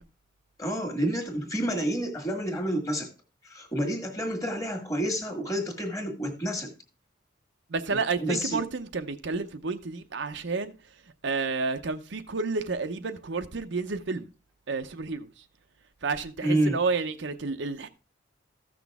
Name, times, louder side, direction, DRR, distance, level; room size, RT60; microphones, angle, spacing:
voice 1, 0.6-3.1 3.4-6.7 7.9-8.6 16.4-16.8, right 1 dB, 15° left, 1.6 m, -29 dB
voice 2, 7.7-10.7 11.2-14.3 14.7-15.3 16.0-17.9, right 4 dB, 60° right, 0.6 m, -30 dB
14.5 x 6.1 x 3.5 m
head